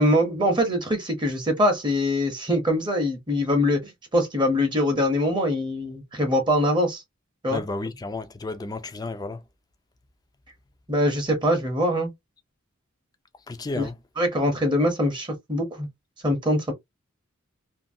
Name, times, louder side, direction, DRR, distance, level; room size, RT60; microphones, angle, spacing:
voice 1, 0.0-7.0 7.4-7.6 10.9-12.1 13.7-13.9 14.2-15.9 16.2-16.7, left 1 dB, 20° right, 0.7 m, -23 dB
voice 2, 7.5-9.4 13.5-14.0, left 2 dB, 20° left, 0.4 m, -32 dB
2.6 x 2.5 x 2.6 m
head